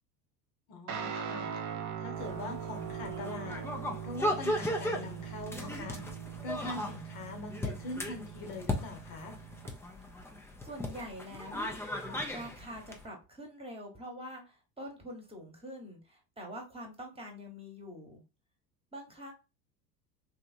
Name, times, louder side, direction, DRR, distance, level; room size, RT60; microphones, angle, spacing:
voice 1, 0.7-1.6 2.0-3.6 4.0-6.0 6.4-9.4, left 3 dB, 50° left, 5 dB, 1.0 m, -42 dB
Guitar, 0.9-9.7, right 7 dB, 35° right, 0.8 m, -41 dB
sound 1, 2.2-13.0, left 1 dB, 5° left, 0.5 m, -37 dB
voice 2, 10.6-12.0 12.3-18.2 18.9-19.3, equal, 10° right, 1 dB, 1.2 m, -45 dB
3.4 x 2.8 x 2.5 m, 0.29 s
hypercardioid pair, 80°, 49 cm